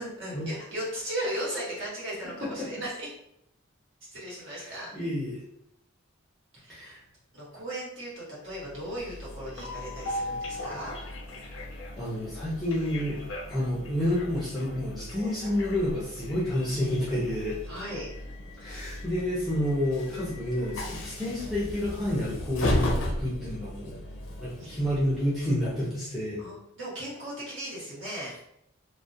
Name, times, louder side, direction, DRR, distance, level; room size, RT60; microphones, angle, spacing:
voice 1, 0.0-3.1 4.1-4.9 6.5-7.0 7.3-10.9 17.7-18.1 24.6-24.7 26.4-28.3, right 1 dB, 60° right, -7 dB, 1.1 m, -36 dB
voice 2, 4.5-5.4 6.7-7.0 11.5-13.2 13.5-17.6 18.6-24.0 24.4-26.4, left 1 dB, ahead, -9 dB, 0.5 m, -29 dB
Train, 8.6-25.8, left 1 dB, 60° left, 0.4 m, -36 dB
2.3 x 2.1 x 2.6 m, 0.79 s
head